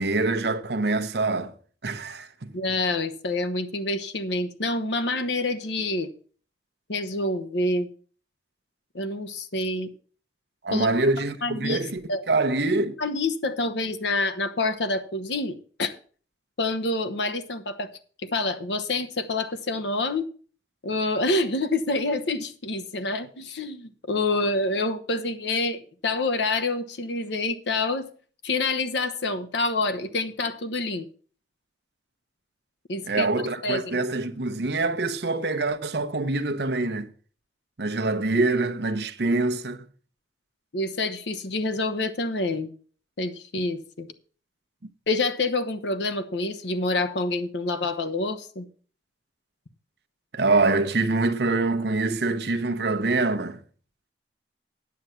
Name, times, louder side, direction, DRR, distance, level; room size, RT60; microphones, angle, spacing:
voice 1, 0.0-1.5 1.8-2.5 10.6-12.0 12.3-12.9 33.1-37.1 37.8-39.8 50.3-53.6, right 3 dB, 65° right, 0.8 m, -25 dB
voice 2, 2.5-6.1 6.9-7.9 8.9-9.9 10.7-12.2 13.0-15.9 16.6-17.9 18.2-20.3 20.8-28.1 28.4-31.1 32.9-33.3 33.6-34.0 40.7-42.7 43.2-44.1 45.1-48.7, left 2 dB, 80° left, 1.0 m, -27 dB
9.6 x 7.7 x 5.7 m
head